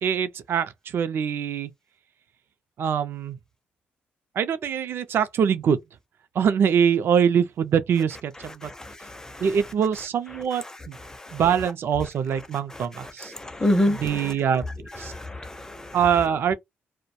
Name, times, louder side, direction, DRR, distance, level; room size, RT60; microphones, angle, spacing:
voice 1, 0.0-1.7 2.8-3.4 4.4-5.8 6.3-8.7 9.4-11.0 11.3-13.3 13.9-14.6 15.0-15.1 15.9-16.5, right 7 dB, 65° right, 0.5 m, -24 dB
voice 2, 8.6-9.4 13.3-14.3 15.1-16.0, left 1 dB, 15° left, 0.5 m, -27 dB
2.3 x 2.1 x 2.6 m
cardioid pair, 115°, 4 cm